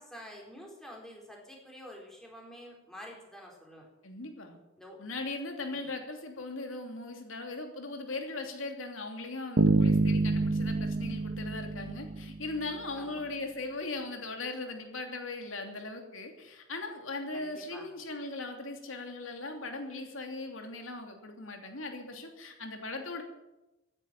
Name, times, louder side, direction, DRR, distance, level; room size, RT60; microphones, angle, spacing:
voice 1, 0.0-3.9 4.8-5.0 5.7-5.9 13.0-13.2 17.3-17.9, equal, 5° left, -1 dB, 4.1 m, -48 dB
voice 2, 4.0-4.6 5.0-23.2, left 2 dB, 85° left, 4 dB, 3.0 m, -39 dB
sound 1, 9.6-12.6, right 3 dB, 70° right, 1.2 m, -27 dB
15.0 x 9.9 x 9.0 m, 0.98 s
head